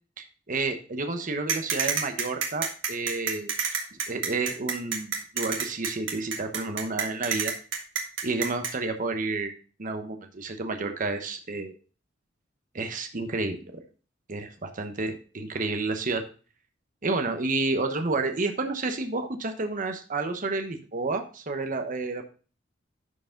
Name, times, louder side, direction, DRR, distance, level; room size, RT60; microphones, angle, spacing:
voice 1, 0.2-3.5 4.1-7.5 8.2-9.5 9.8-11.7 12.7-13.8 14.3-16.2 17.0-22.2, right 3 dB, 45° right, 6 dB, 1.0 m, -30 dB
sound 1, 1.5-8.7, right 6 dB, 75° right, 1.8 m, -28 dB
11.0 x 4.8 x 3.7 m, 0.37 s
head